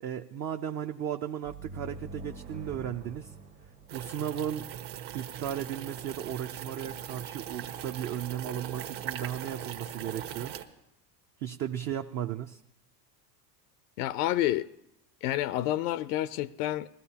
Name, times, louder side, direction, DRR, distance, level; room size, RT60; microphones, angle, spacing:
voice 1, 0.0-3.3 3.9-4.7 5.1-10.5 11.4-12.6, right 10 dB, 35° right, 0.5 m, -35 dB
sound 1, 1.4-5.0, right 2 dB, 90° right, 1.8 m, -45 dB
sound 2, 3.9-10.6, right 10 dB, 60° right, 1.3 m, -40 dB
voice 2, 14.0-14.7 15.2-16.9, left 14 dB, 65° left, 0.5 m, -29 dB
20.5 x 15.0 x 2.8 m
supercardioid pair, 100°, 50 cm